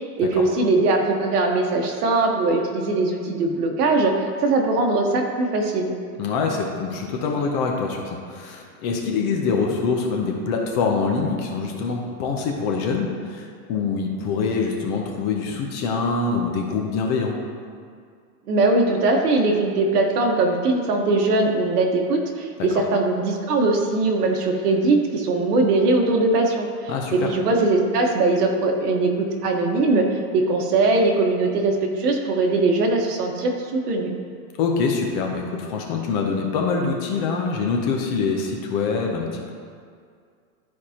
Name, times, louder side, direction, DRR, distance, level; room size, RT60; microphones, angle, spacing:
voice 1, 0.2-5.9 18.5-34.1, right 2 dB, 75° right, 2 dB, 1.3 m, -21 dB
voice 2, 6.2-17.4 22.7-22.8 26.9-27.3 34.6-39.5, left 4 dB, 30° left, 1 dB, 0.7 m, -25 dB
12.0 x 4.7 x 2.9 m, 2.2 s
supercardioid pair, 160°, 46 cm